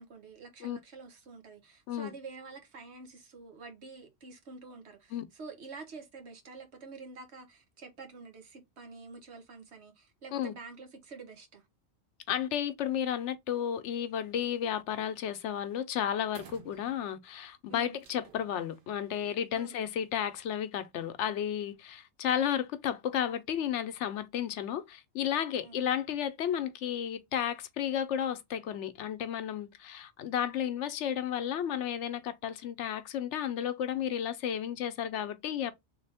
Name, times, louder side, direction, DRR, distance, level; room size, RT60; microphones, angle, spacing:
voice 1, 0.0-11.6 17.7-18.0 19.5-19.7 25.6-25.9, right 4 dB, 75° right, 1.3 m, -48 dB
voice 2, 12.3-35.7, left 9 dB, 85° left, 0.9 m, -33 dB
sound 1, 14.6-14.8 15.2-15.5 15.7-15.8 16.2-17.4 18.0-20.0, right 7 dB, 55° right, 0.8 m, -56 dB
3.3 x 3.1 x 3.4 m
omnidirectional pair, 1.2 m